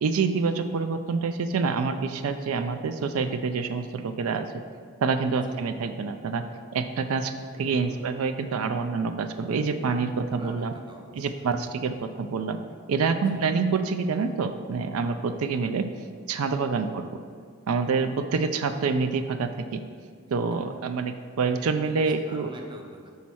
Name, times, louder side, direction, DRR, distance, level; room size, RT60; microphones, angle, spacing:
voice 1, 0.0-4.4 5.0-6.4 6.7-7.3 7.6-10.7 11.1-12.6 12.9-15.9 16.3-17.0 17.7-19.8 20.3-22.5, right 4 dB, 80° right, 9 dB, 0.4 m, -27 dB
voice 2, 7.5-8.4 10.3-11.5 13.3-13.5 16.7-17.0 21.4-23.1, right 1 dB, 20° right, 2 dB, 0.6 m, -46 dB
5.6 x 4.2 x 6.1 m, 2.1 s
head